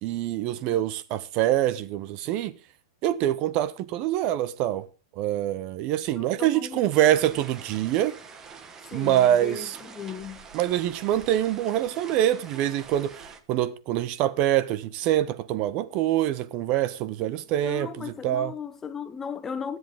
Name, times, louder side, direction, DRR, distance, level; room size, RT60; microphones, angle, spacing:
voice 1, 0.0-2.5 3.0-4.9 5.2-8.2 8.9-9.8 10.5-18.5, right 12 dB, 35° right, 0.7 m, -25 dB
voice 2, 6.1-6.9 8.9-10.4 17.6-19.8, left 6 dB, 15° left, 0.8 m, -36 dB
sound 1, 6.9-13.4, right 5 dB, 15° right, 1.3 m, -46 dB
21.5 x 8.0 x 3.6 m
supercardioid pair, 155°, 3 cm